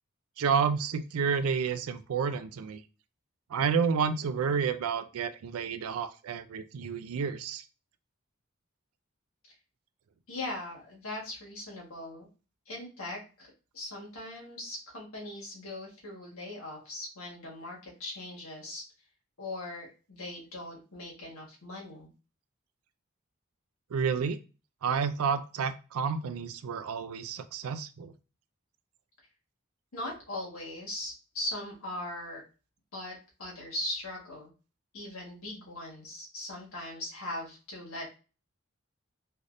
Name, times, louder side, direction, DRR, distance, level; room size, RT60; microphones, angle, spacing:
voice 1, 0.4-2.8 3.5-7.6 23.9-24.4 24.8-28.1, right 6 dB, 85° right, 11 dB, 0.4 m, -30 dB
voice 2, 10.3-12.3 12.7-18.8 19.4-22.1 29.9-32.4 32.9-34.5 34.9-38.2, left 1 dB, 85° left, -2 dB, 1.4 m, -40 dB
3.3 x 2.6 x 2.5 m, 0.33 s
head